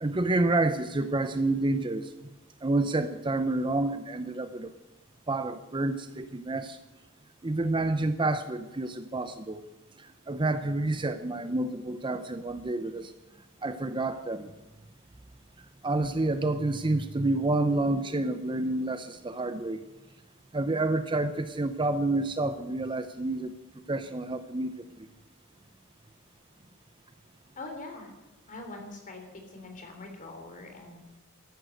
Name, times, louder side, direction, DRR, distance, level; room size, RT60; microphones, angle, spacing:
voice 1, 0.0-2.1 2.6-4.7 5.3-6.8 7.4-9.6 10.0-13.1 13.6-14.5 15.8-19.8 20.5-23.5 23.9-24.8, right 2 dB, 20° right, 10 dB, 0.6 m, -29 dB
voice 2, 27.6-28.1 28.5-31.2, left 2 dB, 35° left, 3 dB, 3.4 m, -43 dB
14.0 x 11.5 x 7.9 m, 1.1 s
head